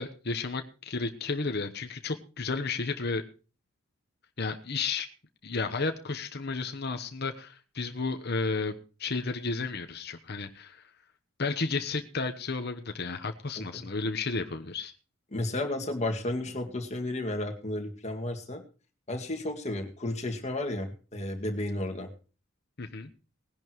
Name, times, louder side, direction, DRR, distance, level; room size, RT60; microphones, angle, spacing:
voice 1, 0.0-3.2 4.4-5.1 5.4-8.7 9.0-10.8 11.4-14.9 22.8-23.1, left 4 dB, 50° left, 6 dB, 1.1 m, -32 dB
voice 2, 13.6-13.9 15.3-18.6 19.1-22.1, left 1 dB, 35° left, 3 dB, 2.2 m, -33 dB
19.5 x 10.5 x 3.1 m, 0.35 s
head